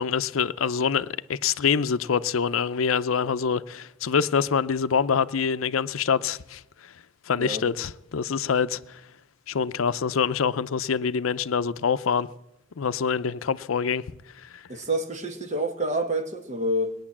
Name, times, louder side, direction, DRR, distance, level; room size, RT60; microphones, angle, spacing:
voice 1, 0.0-6.9 7.3-9.0 9.5-12.3 12.8-14.0 14.4-14.6, left 6 dB, 85° left, 0.5 m, -25 dB
voice 2, 14.7-16.9, right 1 dB, 35° right, 1.3 m, -28 dB
20.5 x 9.2 x 7.3 m
head